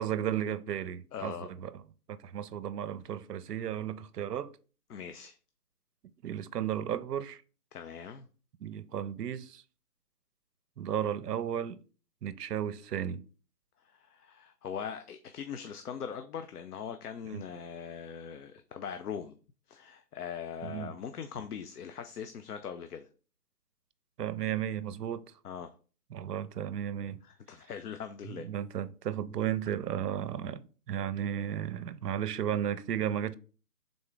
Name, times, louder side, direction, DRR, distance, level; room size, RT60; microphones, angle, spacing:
voice 1, 0.0-1.7 2.1-4.5 6.2-7.4 8.6-9.6 10.8-11.8 12.2-13.3 17.3-17.4 20.6-20.9 24.2-25.2 26.1-27.2 28.3-33.3, right 10 dB, 75° right, 0.6 m, -34 dB
voice 2, 1.1-1.5 4.9-5.4 7.7-8.3 13.8-19.3 19.7-23.1 25.4-25.7 27.2-28.5, left 7 dB, 70° left, 0.5 m, -41 dB
3.7 x 3.4 x 3.8 m
hypercardioid pair, 175°, 48 cm